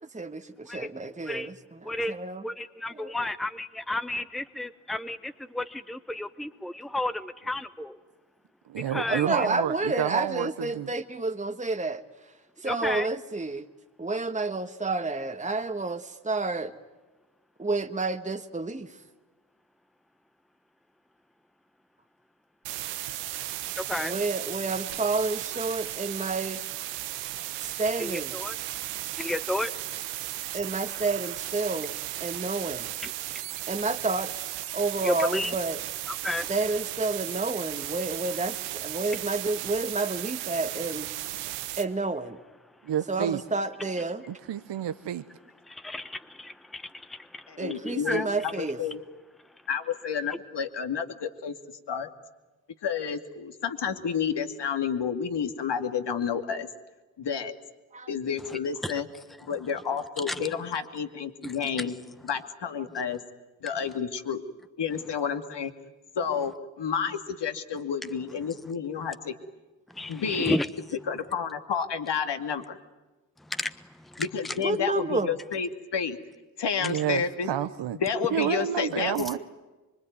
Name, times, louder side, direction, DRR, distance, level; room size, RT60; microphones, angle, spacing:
voice 1, 0.0-2.5 2.9-3.3 9.1-13.7 14.0-16.7 17.6-19.0 24.0-26.6 27.6-28.3 30.5-31.9 32.2-32.9 33.7-34.4 34.7-35.8 36.5-41.1 41.8-42.4 43.1-44.2 47.6-48.8 57.9-58.1 74.6-75.4, right 3 dB, 15° right, 1.5 m, -30 dB
voice 2, 2.4-8.0 8.9-9.5 12.6-13.1 23.8-24.1 28.0-28.5 29.2-29.7 33.0-33.1 35.0-35.5 36.2-36.5 45.7-47.5 47.8-48.3 58.5-58.9 60.3-60.6 61.4-61.9 69.9-70.7 73.5-73.7 74.0-74.5, left 1 dB, ahead, 1.2 m, -32 dB
voice 3, 8.7-10.5 10.7-10.9 42.8-43.4 44.3-45.2 76.8-78.0 78.3-79.4, right 10 dB, 60° right, 1.1 m, -29 dB
sound 1, 22.6-41.8, right 14 dB, 90° right, 1.3 m, -35 dB
voice 4, 47.5-49.0 49.7-51.6 51.9-52.1 52.8-56.7 57.2-57.5 58.1-59.1 59.5-61.9 62.2-63.2 63.6-64.4 64.8-65.7 66.2-69.3 70.1-70.6 71.1-72.8 74.2-76.2 76.6-77.5 78.0-79.3, left 6 dB, 55° left, 2.5 m, -30 dB
24.5 x 24.5 x 9.4 m
hypercardioid pair, 40°, 48 cm